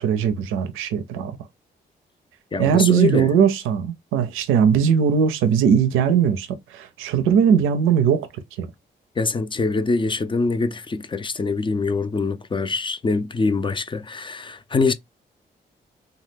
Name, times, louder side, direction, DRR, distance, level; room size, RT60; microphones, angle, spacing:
voice 1, 0.0-1.4 2.6-8.3 8.6-8.7, right 7 dB, 90° right, 0.4 m, -19 dB
voice 2, 2.5-3.3 9.2-14.9, left 4 dB, 25° left, 0.4 m, -24 dB
2.8 x 2.3 x 3.3 m
supercardioid pair, 50°, 20 cm